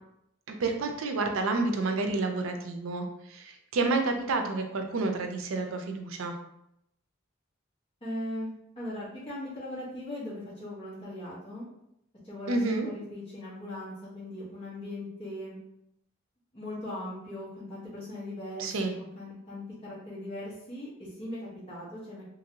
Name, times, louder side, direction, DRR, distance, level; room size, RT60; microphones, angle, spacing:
voice 1, 0.5-6.3 12.5-12.9 18.6-18.9, right 3 dB, 85° right, 5 dB, 0.4 m, -29 dB
voice 2, 8.0-8.5 8.8-11.6 12.2-12.6 12.8-15.6 16.5-22.2, left 1 dB, 25° left, -10 dB, 1.0 m, -39 dB
2.9 x 2.6 x 2.8 m, 0.80 s
head